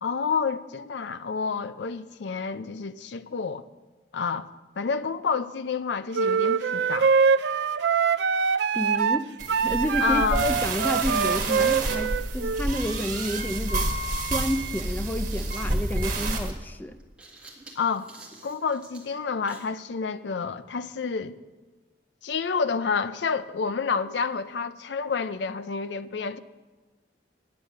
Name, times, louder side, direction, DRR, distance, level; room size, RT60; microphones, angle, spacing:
voice 1, 0.0-3.6 4.1-4.5 4.8-7.1 10.0-10.5 11.6-11.7 17.8-18.1 18.4-21.4 22.2-26.4, left 5 dB, 75° left, 0.5 m, -29 dB
sound 1, 6.1-12.6, right 6 dB, 65° right, 0.4 m, -24 dB
voice 2, 8.7-9.3 9.6-13.9 14.2-17.0, left 1 dB, 10° left, 0.4 m, -30 dB
sound 2, 9.4-16.5, right 2 dB, 45° right, 1.5 m, -29 dB
sound 3, 15.3-19.8, right 2 dB, 5° right, 1.6 m, -49 dB
9.6 x 8.8 x 6.5 m
head